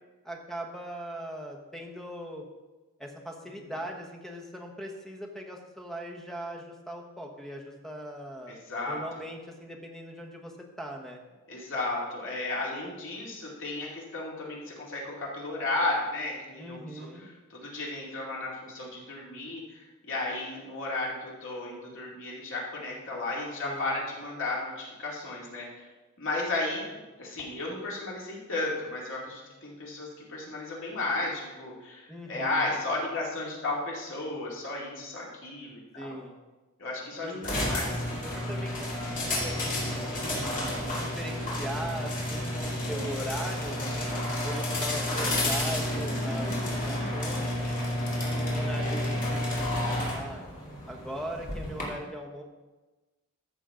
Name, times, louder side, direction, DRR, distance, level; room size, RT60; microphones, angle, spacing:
voice 1, 0.2-2.4 3.0-8.5 8.9-11.2 16.6-17.3 23.6-24.0 32.1-32.7 36.0-36.4 37.2-40.6 41.0-44.2 44.4-47.7 48.2-50.4 50.9-52.4, right 1 dB, ahead, 1 dB, 1.2 m, -40 dB
voice 2, 8.5-9.0 11.5-17.1 17.5-25.9 26.2-36.2 36.8-38.0, left 2 dB, 65° left, -4 dB, 2.6 m, -34 dB
sound 1, 37.4-51.8, left 1 dB, 40° left, 2.4 m, -31 dB
14.0 x 6.5 x 3.8 m, 1.2 s
head